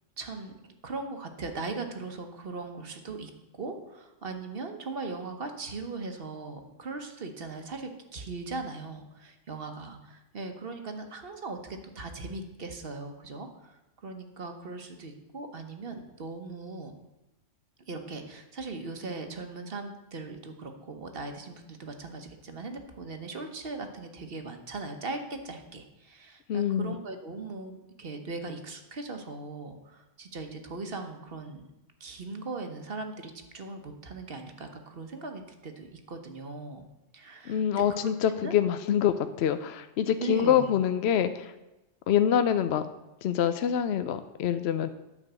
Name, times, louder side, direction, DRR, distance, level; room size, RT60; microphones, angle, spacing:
voice 1, 0.2-16.9 17.9-31.7 32.0-36.8 37.1-38.1 38.4-38.6 40.2-40.7, right 3 dB, 50° right, 5 dB, 1.2 m, -39 dB
voice 2, 26.5-27.0 37.5-41.5 42.1-42.8 43.2-44.9, left 9 dB, 65° left, 10 dB, 0.8 m, -25 dB
9.6 x 5.4 x 8.0 m, 1.0 s
omnidirectional pair, 1.3 m